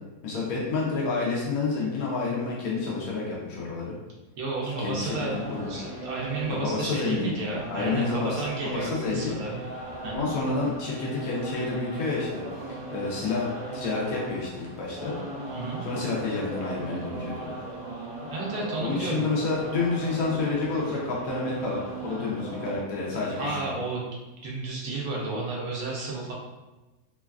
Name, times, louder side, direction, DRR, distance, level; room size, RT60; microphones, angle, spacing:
voice 1, 0.2-3.9 4.8-5.7 6.5-7.3 7.7-9.3 10.1-12.4 12.9-15.2 15.8-17.5 18.8-23.6, left 4 dB, 90° left, -4 dB, 1.1 m, -29 dB
voice 2, 4.4-5.4 5.7-9.6 10.0-10.3 15.5-15.8 18.3-19.3 23.4-24.1 24.4-26.3, right 3 dB, 80° right, -3 dB, 1.1 m, -32 dB
sound 1, 5.0-22.8, right 2 dB, 20° right, 0.8 m, -38 dB
3.1 x 2.2 x 2.3 m, 1.1 s
omnidirectional pair, 1.5 m